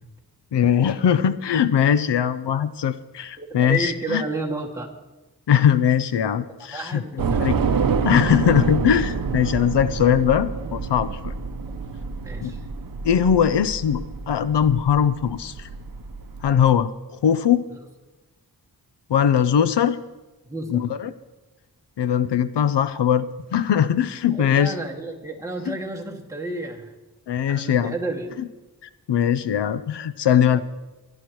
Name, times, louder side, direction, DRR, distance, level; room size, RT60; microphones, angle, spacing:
voice 1, 0.5-4.2 5.5-7.5 8.0-11.3 12.4-12.5 13.0-15.7 16.4-17.7 19.1-20.0 20.7-21.1 22.0-24.7 25.7-25.8 27.3-27.9 29.1-30.6, left 8 dB, 85° left, 14 dB, 0.6 m, -20 dB
voice 2, 3.4-4.9 6.7-7.5 11.7-11.8 12.2-12.6 20.5-20.9 24.3-26.9 27.5-28.3 30.5-30.6, right 1 dB, 10° right, -2 dB, 2.1 m, -31 dB
Train / Subway metro underground, 7.2-16.6, right 5 dB, 55° right, 0.8 m, -27 dB
22.5 x 11.5 x 3.1 m, 1.1 s
wide cardioid pair, 95°, 40 cm